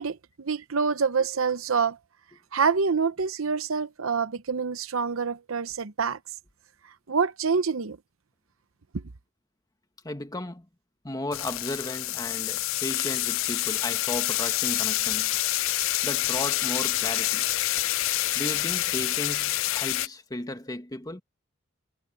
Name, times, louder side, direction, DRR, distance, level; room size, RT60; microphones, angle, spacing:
voice 1, 0.0-2.0 2.5-6.2 7.1-8.0 8.9-9.0, right 5 dB, 75° right, 0.8 m, -26 dB
voice 2, 10.0-10.7 11.0-15.4 16.0-17.5 18.3-21.2, left 1 dB, 20° left, 1.7 m, -35 dB
sound 1, 11.3-20.1, left 16 dB, 70° left, 0.5 m, -27 dB
head